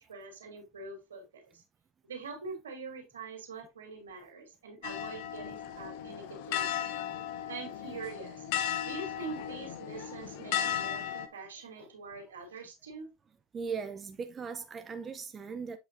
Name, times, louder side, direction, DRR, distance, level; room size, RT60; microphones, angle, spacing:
voice 1, 0.0-1.6 2.0-6.9 7.5-8.5 8.8-13.1, right 3 dB, 80° right, 2.8 m, -44 dB
sound 1, 4.8-11.3, left 10 dB, 65° left, 0.9 m, -36 dB
voice 2, 13.5-15.8, right 5 dB, 30° right, 0.7 m, -39 dB
8.2 x 5.1 x 2.6 m
hypercardioid pair, 75°, 0 cm